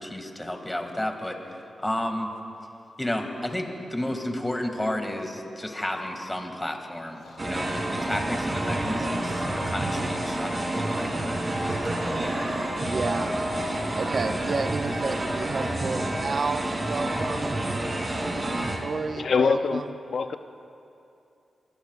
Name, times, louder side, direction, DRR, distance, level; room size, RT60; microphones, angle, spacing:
voice 1, 0.0-2.3 3.0-11.4, left 1 dB, 15° left, 3 dB, 2.2 m, -32 dB
Breathing, 5.5-6.7 7.1-7.8 8.5-9.6, left 1 dB, 90° left, 4.5 m, -45 dB
sound 1, 7.4-18.8, right 1 dB, 40° right, 3.0 m, -28 dB
voice 2, 12.9-13.4 13.9-17.6 18.8-19.9, right 4 dB, 55° right, 9 dB, 0.6 m, -31 dB
voice 3, 19.2-19.8 20.1-20.4, left 5 dB, 70° left, 8 dB, 0.5 m, -23 dB
24.5 x 20.5 x 2.5 m, 2.7 s
cardioid pair, 70°, 0 cm